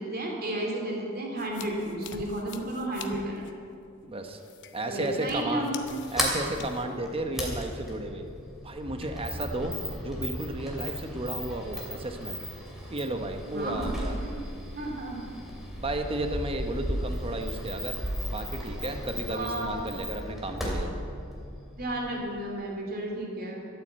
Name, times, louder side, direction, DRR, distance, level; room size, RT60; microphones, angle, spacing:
voice 1, 0.0-3.4 4.9-5.7 13.5-13.9 14.2-14.5 14.8-15.3 19.3-19.7 21.8-23.6, right 1 dB, 45° right, 0 dB, 2.6 m, -32 dB
sound 1, 1.4-6.8, left 6 dB, 60° left, 0.9 m, -46 dB
voice 2, 4.1-4.4 4.7-5.7 6.1-8.3 8.6-9.7 10.0-12.4 12.9-14.1 15.8-18.0 18.2-20.9, right 1 dB, 25° right, 5 dB, 1.0 m, -33 dB
Sliding door, 5.8-22.2, equal, ahead, 2.7 m, -35 dB
13.0 x 9.6 x 8.0 m, 2.5 s
head